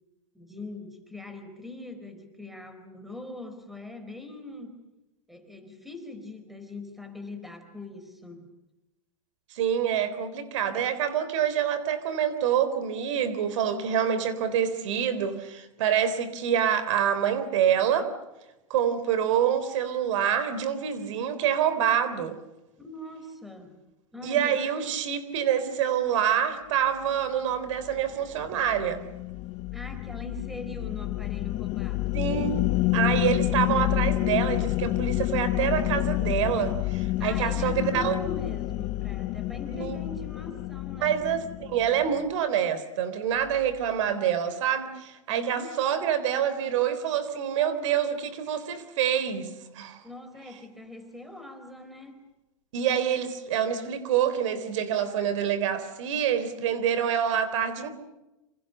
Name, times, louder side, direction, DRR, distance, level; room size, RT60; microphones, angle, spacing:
voice 1, 0.3-4.8 5.3-8.5 22.8-23.8 24.1-24.7 29.7-32.3 37.2-41.2 45.3-45.8 50.0-52.2, left 2 dB, ahead, 7 dB, 4.4 m, -41 dB
voice 2, 9.5-18.1 18.7-22.4 24.2-29.0 32.1-32.6 32.9-38.2 39.7-40.0 41.0-49.5 49.7-50.0 52.7-57.9, right 9 dB, 65° right, 12 dB, 3.7 m, -26 dB
sound 1, 27.7-42.2, left 18 dB, 40° left, 0.9 m, -29 dB
27.5 x 26.5 x 6.8 m, 1.0 s
hypercardioid pair, 135°, 17 cm